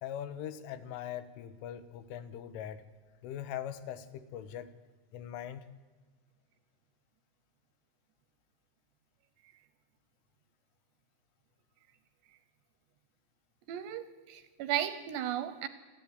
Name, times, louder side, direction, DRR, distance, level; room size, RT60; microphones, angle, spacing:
voice 1, 0.0-2.8 3.2-4.7 5.1-5.6, left 10 dB, 85° left, 12 dB, 3.6 m, -41 dB
voice 2, 13.7-15.7, right 11 dB, 75° right, 12 dB, 2.6 m, -35 dB
28.0 x 12.5 x 9.5 m, 1.3 s
omnidirectional pair, 5.6 m